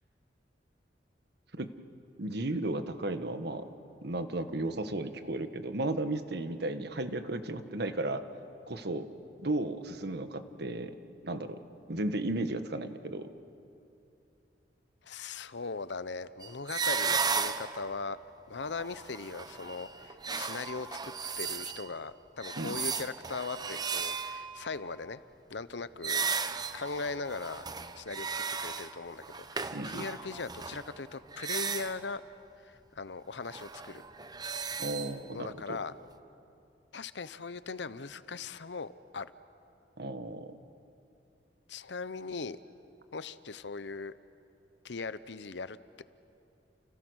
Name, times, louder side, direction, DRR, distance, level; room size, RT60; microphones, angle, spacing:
voice 1, 2.2-3.7 4.0-8.3 8.7-9.1 9.4-11.0 11.2-11.6 11.9-13.3 22.6-22.8 29.7-30.1 34.8-35.8 40.0-40.6, right 2 dB, 65° right, 9 dB, 1.4 m, -34 dB
voice 2, 15.0-18.2 18.5-25.2 25.5-26.2 26.7-27.6 28.0-28.3 28.6-29.2 29.5-32.2 32.6-34.0 35.3-35.9 36.9-39.3 41.7-42.6 43.1-44.1 44.8-46.0, left 4 dB, 75° left, 15 dB, 0.8 m, -39 dB
sound 1, 16.4-18.0 18.6-22.0 22.4-24.7 26.0-32.1 33.4-35.1, right 5 dB, 25° right, 0.9 m, -35 dB
30.0 x 29.0 x 6.4 m, 2.7 s
head